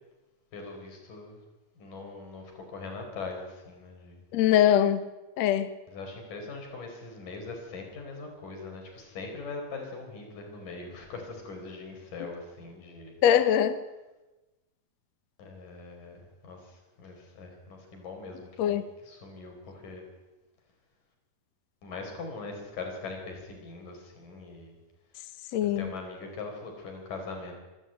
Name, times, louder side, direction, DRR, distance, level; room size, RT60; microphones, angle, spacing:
voice 1, 0.5-1.4 1.8-4.2 5.9-13.2 15.4-20.0 21.8-24.8 25.8-27.5, left 3 dB, 55° left, 3 dB, 6.0 m, -41 dB
voice 2, 4.3-5.0 5.4-5.7 13.2-13.8 18.6-18.8 25.5-25.9, left 10 dB, 75° left, 11 dB, 1.5 m, -22 dB
27.0 x 13.0 x 9.0 m, 1.1 s
omnidirectional pair, 4.6 m